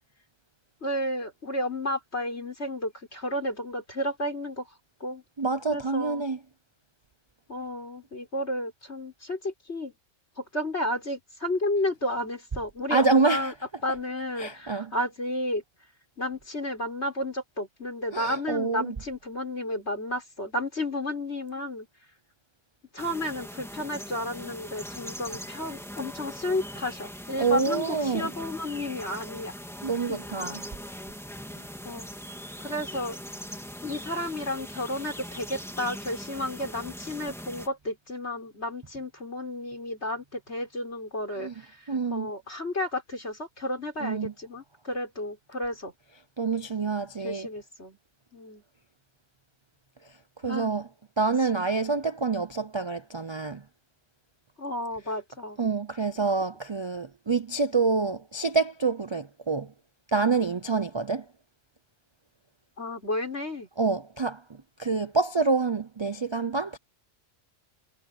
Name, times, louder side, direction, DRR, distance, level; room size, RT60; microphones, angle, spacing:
voice 1, 0.8-4.7 5.0-5.2 5.7-6.3 7.5-9.9 10.4-13.5 13.8-15.6 16.2-21.9 22.9-29.5 30.1-30.2 31.8-32.1 32.6-33.2 33.8-45.9 47.2-48.0 48.3-48.6 50.4-50.7 54.6-55.6 62.8-63.7, left 1 dB, 55° left, 6.7 m, -32 dB
voice 2, 5.4-6.4 12.9-13.5 14.4-14.9 18.1-18.9 27.4-28.3 29.8-30.6 41.4-41.5 41.9-42.3 44.0-44.3 46.4-47.5 50.4-50.9 51.2-53.6 55.6-59.7 60.1-61.2 63.8-64.4 64.8-66.8, right 4 dB, 30° right, 0.5 m, -27 dB
sound 1, 23.0-37.7, equal, ahead, 2.7 m, -41 dB
omnidirectional pair, 1.3 m